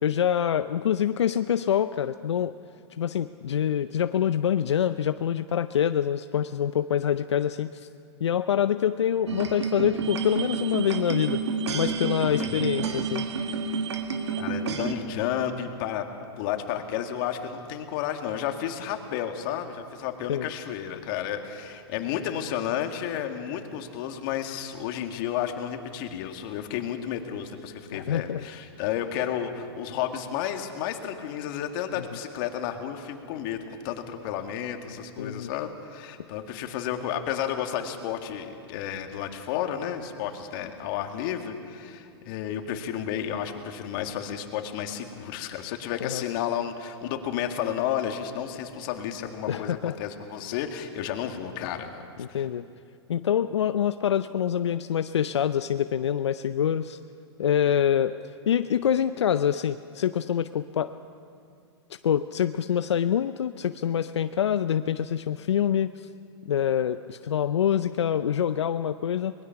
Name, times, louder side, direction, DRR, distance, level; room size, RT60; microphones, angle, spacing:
voice 1, 0.0-2.5 3.0-7.9 8.2-11.4 11.7-13.3 20.3-20.5 27.9-28.5 32.0-32.1 35.2-35.5 46.0-46.2 49.5-50.0 52.2-52.7 53.1-57.0 57.4-58.2 58.5-60.9 62.0-66.1 66.5-69.3, left 9 dB, 90° left, 11 dB, 0.5 m, -25 dB
sound 1, 9.3-14.9, right 5 dB, 85° right, 1.8 m, -29 dB
voice 2, 12.2-12.7 14.4-16.1 16.4-52.0 52.3-52.4, left 9 dB, 50° left, 5 dB, 2.0 m, -32 dB
22.5 x 20.5 x 5.9 m, 2.5 s
hypercardioid pair, 120°, 14 cm